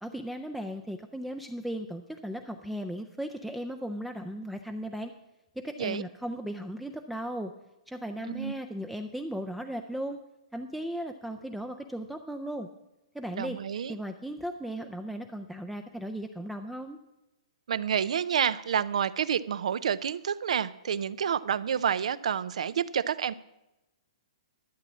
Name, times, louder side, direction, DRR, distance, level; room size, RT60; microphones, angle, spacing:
voice 1, 0.0-5.1 5.6-7.5 7.9-10.2 10.5-12.7 13.1-13.6 13.9-17.0, equal, ahead, 6 dB, 0.4 m, -36 dB
voice 2, 13.3-13.9 17.7-23.3, right 8 dB, 70° right, 18 dB, 0.5 m, -29 dB
12.0 x 7.4 x 7.2 m, 0.96 s
hypercardioid pair, 160°, 4 cm